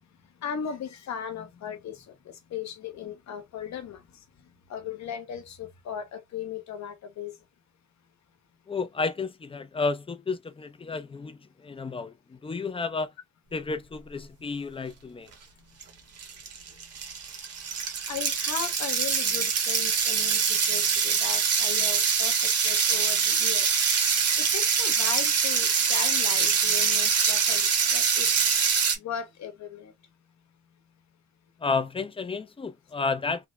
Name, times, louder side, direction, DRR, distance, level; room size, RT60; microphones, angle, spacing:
voice 1, 0.4-4.2 4.7-7.4 18.1-23.7 24.4-28.6 29.0-29.9, left 8 dB, 65° left, 1.0 m, -37 dB
voice 2, 8.7-13.1 13.5-15.3 31.6-33.5, left 4 dB, 20° left, 0.5 m, -31 dB
sound 1, 15.8-15.9 16.2-29.0, right 6 dB, 55° right, 1.2 m, -24 dB
3.6 x 2.1 x 3.1 m
cardioid pair, 90°, 30 cm